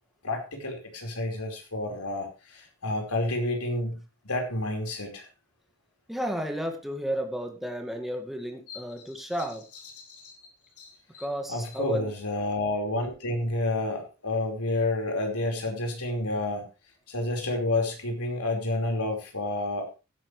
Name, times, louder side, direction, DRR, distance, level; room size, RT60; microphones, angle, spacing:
voice 1, 0.2-4.0 4.2-5.2 8.7-8.8 10.0-10.4 10.8-16.7 17.1-19.9, left 2 dB, 85° left, 2 dB, 5.0 m, -30 dB
voice 2, 6.1-9.6 11.2-12.1, equal, ahead, 3 dB, 2.1 m, -32 dB
16.0 x 12.0 x 3.4 m, 0.30 s
head